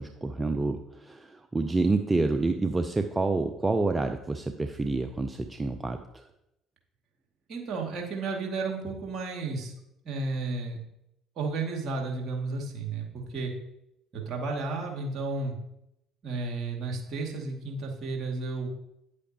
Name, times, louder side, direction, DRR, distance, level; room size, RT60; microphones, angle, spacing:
voice 1, 0.0-6.3, right 3 dB, 20° right, 7 dB, 0.6 m, -28 dB
voice 2, 7.5-9.7 10.0-10.8 11.4-13.5 14.1-15.6 16.2-18.7, right 3 dB, 50° right, 0 dB, 2.3 m, -32 dB
9.7 x 8.2 x 2.9 m, 0.82 s
figure-of-eight pair, 55°, 0 cm